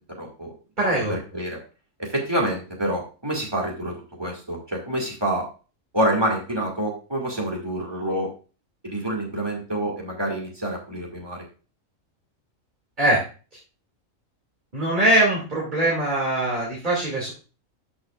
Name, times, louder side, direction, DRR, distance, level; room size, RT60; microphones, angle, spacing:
voice 1, 0.2-0.5 1.1-1.6 2.0-5.5 5.9-8.3 8.8-11.4, right 1 dB, 20° right, 0 dB, 2.2 m, -27 dB
voice 2, 0.8-1.1 13.0-13.2 14.7-17.3, right 1 dB, 35° right, -5 dB, 2.7 m, -22 dB
12.5 x 6.2 x 2.5 m, 0.35 s
omnidirectional pair, 1.4 m